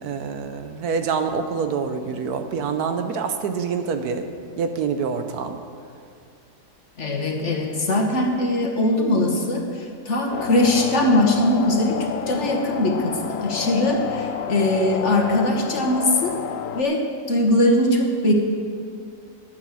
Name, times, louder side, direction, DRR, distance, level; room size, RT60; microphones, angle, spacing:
voice 1, 0.0-4.3 4.6-5.6, right 5 dB, 70° right, 7 dB, 1.2 m, -26 dB
voice 2, 7.0-16.4 16.7-18.3, left 1 dB, 45° left, 2 dB, 1.5 m, -21 dB
sound 1, 10.3-16.8, left 9 dB, 65° left, 0.8 m, -30 dB
11.0 x 9.1 x 7.4 m, 2.3 s
omnidirectional pair, 1.8 m